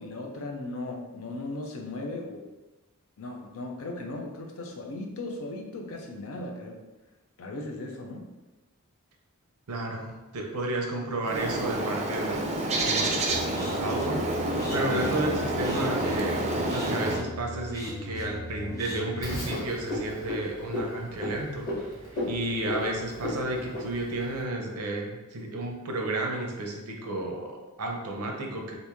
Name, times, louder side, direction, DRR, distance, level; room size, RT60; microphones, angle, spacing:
voice 1, 0.0-2.5 3.2-6.8 7.4-8.3, left 2 dB, 65° left, 2 dB, 0.5 m, -37 dB
voice 2, 9.7-12.5 12.8-13.3 13.5-14.2 14.7-21.9 22.3-28.8, right 2 dB, 75° right, 2 dB, 0.6 m, -32 dB
Bird, 11.2-17.2, right 1 dB, 30° right, 0.4 m, -28 dB
sound 1, 13.3-19.5, left 1 dB, 15° left, 0.6 m, -39 dB
Frog, 19.2-24.4, left 1 dB, 40° left, 1.2 m, -35 dB
3.0 x 2.6 x 3.5 m, 1.1 s
head